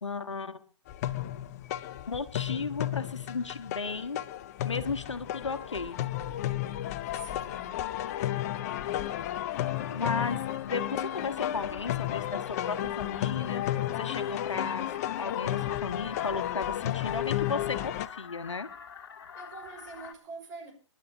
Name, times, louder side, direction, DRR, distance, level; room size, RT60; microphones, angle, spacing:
voice 1, 0.0-0.6 2.1-4.2 4.6-6.0 9.9-18.7, left 4 dB, 75° left, 1.5 m, -35 dB
sound 1, 0.9-18.1, left 13 dB, 30° left, 0.8 m, -33 dB
sound 2, 1.4-2.4 2.6-3.4 4.0-4.1 4.4-4.7 5.0-20.1, left 7 dB, 50° left, 2.4 m, -47 dB
voice 2, 7.1-8.0 19.3-20.7, right 4 dB, 35° right, 5.6 m, -45 dB
28.0 x 11.5 x 2.9 m
figure-of-eight pair, 130°, 16 cm